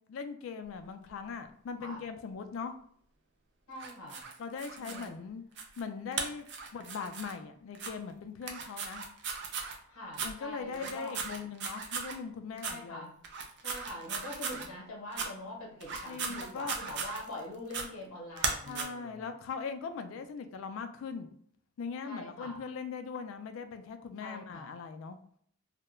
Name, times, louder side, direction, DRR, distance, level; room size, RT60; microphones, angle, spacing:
voice 1, 0.1-2.7 4.4-5.4 5.8-6.5 6.7-9.0 10.2-13.1 16.1-16.8 18.7-21.3 21.8-25.2, left 5 dB, 65° left, 8 dB, 0.3 m, -40 dB
voice 2, 3.7-4.2 4.8-5.2 9.9-11.2 12.6-13.1 13.6-19.3 22.0-22.6 24.2-24.7, left 1 dB, 90° left, -2 dB, 0.8 m, -44 dB
sound 1, 3.8-5.1 5.6-5.8 6.1-7.3 7.7-7.9 8.4-9.8 10.1-10.3 10.7-12.2 12.6-12.8 13.2-14.7 15.1-15.3 15.8-17.4 17.7-17.9 18.4-18.8, right 5 dB, 55° right, 0.4 m, -37 dB
2.2 x 2.1 x 2.9 m, 0.64 s
head